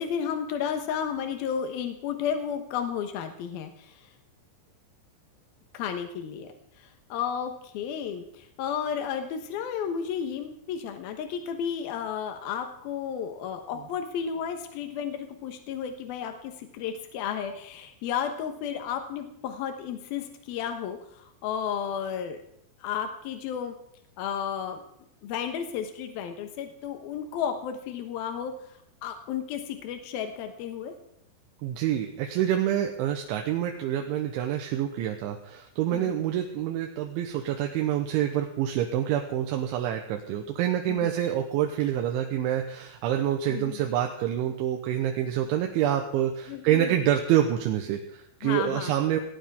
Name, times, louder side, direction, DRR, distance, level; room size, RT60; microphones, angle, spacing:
voice 1, 0.0-4.1 5.7-6.5 6.8-22.4 22.8-23.7 24.2-24.8 25.2-30.9 35.9-36.2 40.9-41.1 43.5-43.8 46.5-47.0 48.4-48.9, left 8 dB, 75° left, 6 dB, 2.3 m, -33 dB
voice 2, 31.6-49.2, right 11 dB, 75° right, 3 dB, 3.2 m, -27 dB
19.0 x 17.5 x 3.6 m, 0.73 s
omnidirectional pair, 5.9 m